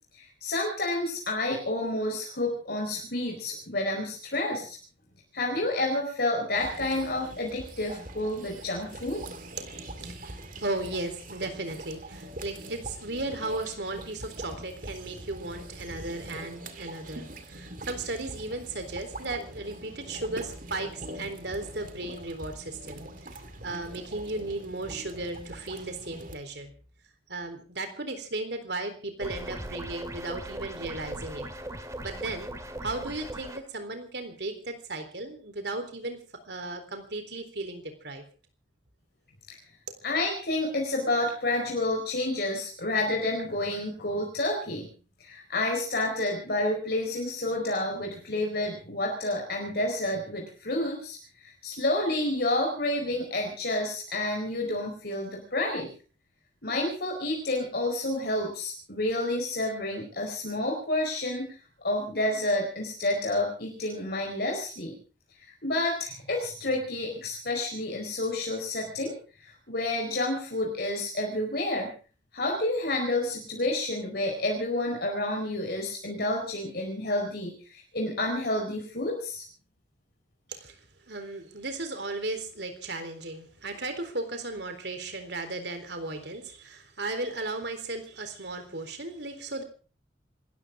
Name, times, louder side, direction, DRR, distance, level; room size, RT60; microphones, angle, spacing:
voice 1, 0.2-4.8 5.3-9.2 39.5-39.6 40.0-44.9 45.2-55.9 56.6-61.5 61.8-64.9 65.4-69.1 69.4-71.9 72.3-79.4, left 1 dB, 55° left, 0 dB, 4.7 m, -29 dB
sound 1, 6.5-26.4, right 1 dB, 45° right, 2.2 m, -43 dB
voice 2, 9.6-26.7 27.3-31.5 32.0-32.5 32.8-36.2 36.5-38.2 80.5-80.8 81.1-89.6, right 2 dB, 60° right, 7 dB, 3.8 m, -36 dB
sound 2, 29.2-33.6, right 1 dB, 15° right, 2.0 m, -39 dB
27.0 x 14.0 x 3.8 m, 0.38 s
head